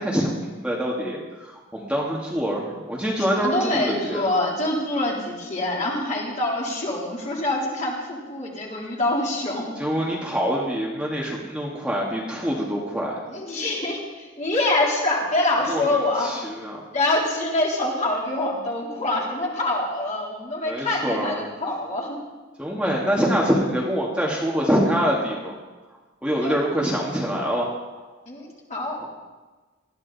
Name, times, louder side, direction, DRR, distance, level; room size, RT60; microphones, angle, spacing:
voice 1, 0.0-4.3 9.8-13.2 15.7-15.8 16.2-16.8 20.7-21.4 22.6-25.6 26.2-27.7 29.0-29.1, equal, 5° right, -3 dB, 2.1 m, -25 dB
voice 2, 3.2-9.7 13.3-16.3 16.9-22.2 26.4-26.6 28.3-29.1, left 2 dB, 35° left, -4 dB, 3.8 m, -25 dB
20.0 x 14.0 x 4.2 m, 1.3 s
head